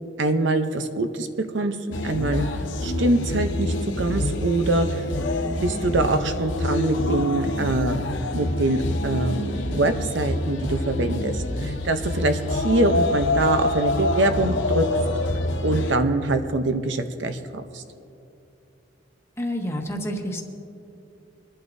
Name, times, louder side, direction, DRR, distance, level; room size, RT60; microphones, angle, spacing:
voice 1, 0.2-1.3 1.5-2.5 2.8-5.0 5.6-8.0 8.3-14.9 15.6-17.8, right 2 dB, 70° right, 8 dB, 0.7 m, -24 dB
sound 1, 1.9-15.9, left 2 dB, 75° left, 0.9 m, -26 dB
voice 2, 19.4-20.4, equal, 15° left, 2 dB, 1.1 m, -28 dB
24.5 x 11.0 x 2.7 m, 2.7 s
head